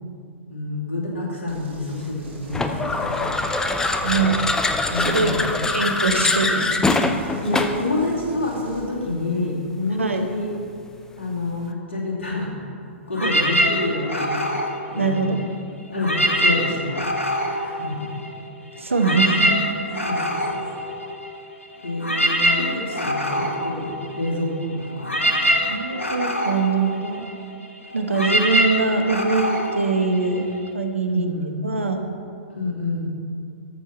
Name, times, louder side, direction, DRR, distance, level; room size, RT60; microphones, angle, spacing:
voice 1, 0.5-3.2 4.1-4.4 4.9-5.6 6.9-7.1 7.4-10.5 11.2-12.5 13.1-14.4 14.9-15.2 15.9-17.0 17.5-18.1 20.1-20.2 20.5-20.6 21.8-25.1 31.1-31.6 32.6-33.1, left 2 dB, 70° left, -3 dB, 2.3 m, -28 dB
sound 1, 1.5-8.9, equal, 60° right, 1.9 m, -44 dB
sound 2, 2.5-7.9, left 2 dB, 10° left, 0.5 m, -23 dB
voice 2, 4.0-4.3 4.9-5.3 5.7-6.9 10.0-10.3 13.2-13.3 15.0-15.5 18.8-19.6 25.7-27.3 27.9-31.3 31.6-32.1, right 4 dB, 80° right, 4 dB, 1.0 m, -23 dB
sound 3, 13.1-15.6 15.9-18.5 18.8-30.7, equal, 85° left, 1.0 m, -24 dB
13.5 x 5.7 x 4.2 m, 2.3 s
figure-of-eight pair, 110°, 7 cm